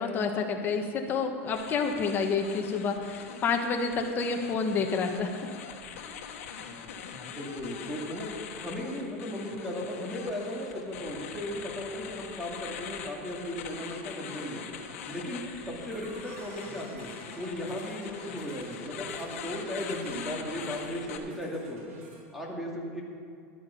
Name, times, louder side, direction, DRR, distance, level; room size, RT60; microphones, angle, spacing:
voice 1, 0.0-5.3, left 5 dB, 30° left, 3 dB, 1.4 m, -29 dB
sound 1, 1.5-21.2, left 7 dB, 80° left, 1.4 m, -43 dB
voice 2, 7.4-14.7 15.1-17.1 17.4-21.8 22.3-23.0, left 1 dB, 5° right, -2 dB, 2.3 m, -36 dB
sound 2, 15.8-22.2, right 2 dB, 85° right, 3.1 m, -48 dB
12.0 x 10.0 x 5.7 m, 2.5 s
supercardioid pair, 145°, 7 cm